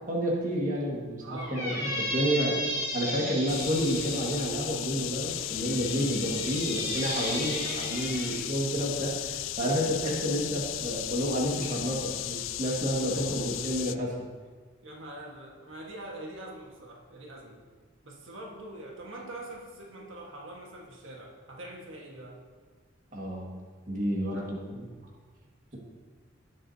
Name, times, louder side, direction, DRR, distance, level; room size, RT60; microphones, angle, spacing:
voice 1, 0.1-1.7 2.0-2.6 2.9-14.1 23.1-23.5 23.9-24.8, equal, 40° right, -3 dB, 1.8 m, -30 dB
voice 2, 1.2-1.6 2.3-2.6 7.9-8.5 12.7-13.2 14.8-17.6 18.0-22.4 24.3-24.5 25.7-25.8, right 1 dB, 85° right, -1 dB, 1.5 m, -44 dB
Squeak, 1.4-4.4 5.3-8.3, left 1 dB, 15° right, 3.4 m, -34 dB
sound 1, 3.5-14.0, left 13 dB, 80° left, 0.4 m, -35 dB
17.5 x 7.4 x 2.8 m, 1.5 s
head